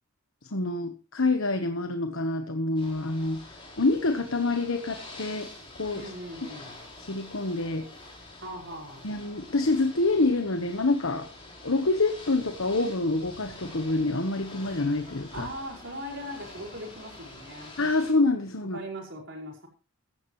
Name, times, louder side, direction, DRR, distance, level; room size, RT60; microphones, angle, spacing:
voice 1, 0.5-3.4 3.8-5.5 5.8-6.1 7.1-7.9 9.0-11.3 11.6-15.5 17.8-18.8, left 2 dB, 65° left, 6 dB, 1.3 m, -26 dB
Ocean / Boat Water vehicle, 2.8-18.1, left 2 dB, 25° left, 4.4 m, -46 dB
voice 2, 5.9-6.8 8.4-9.1 15.3-17.7 18.7-19.7, equal, 55° right, 0 dB, 5.4 m, -39 dB
16.0 x 13.0 x 3.2 m, 0.33 s
head